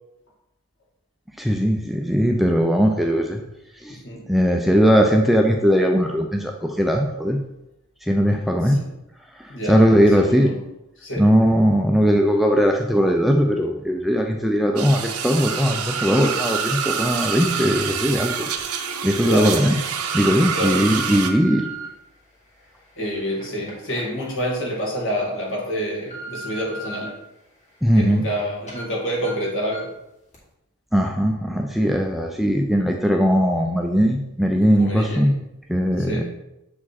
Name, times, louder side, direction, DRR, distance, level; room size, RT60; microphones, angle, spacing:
voice 1, 1.4-3.4 3.8-4.0 4.3-7.4 8.0-8.8 9.7-10.5 11.2-18.5 19.0-19.8 20.1-21.6 27.8-28.2 30.9-35.3 35.7-36.2, equal, ahead, 2 dB, 0.4 m, -19 dB
voice 2, 3.9-4.3 8.6-8.9 9.5-9.8 10.2-10.6 11.0-11.3 17.4-17.7 19.3-19.6 20.5-20.9 23.0-27.2 28.0-29.9 34.6-35.4 36.0-36.2, equal, 60° left, -1 dB, 1.9 m, -28 dB
sound 1, 14.8-21.3, right 6 dB, 85° right, 0.8 m, -27 dB
sound 2, 18.6-18.7 19.3-19.6 20.2-21.9 22.5-24.8 25.2-25.3 25.8-27.1 27.5-28.4 28.7-28.8 29.2-29.3 29.7-30.0 30.3-30.4, right 2 dB, 30° left, 2.1 m, -38 dB
7.4 x 4.9 x 4.2 m, 0.88 s
head